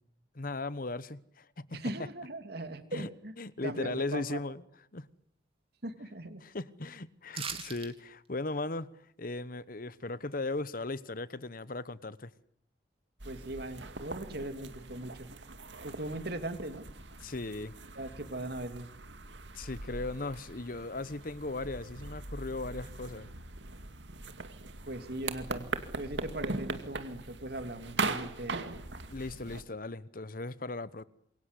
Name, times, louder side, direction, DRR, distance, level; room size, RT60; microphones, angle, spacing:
voice 1, 0.3-1.6 2.9-3.1 3.4-4.6 4.9-5.1 6.4-8.9 9.2-12.3 17.2-17.7 19.5-23.3 29.1-31.0, left 2 dB, 50° left, 1.1 m, -37 dB
voice 2, 1.7-3.3 3.6-4.4 5.8-6.4 13.2-15.3 15.8-16.8 17.9-18.9 24.9-25.7 26.0-28.8, right 1 dB, 60° right, 2.8 m, -39 dB
sound 1, 7.3-7.9 8.3-8.4, right 7 dB, 30° right, 3.0 m, -38 dB
sound 2, 13.2-29.6, right 3 dB, 85° right, 2.3 m, -40 dB
27.0 x 23.0 x 8.3 m
head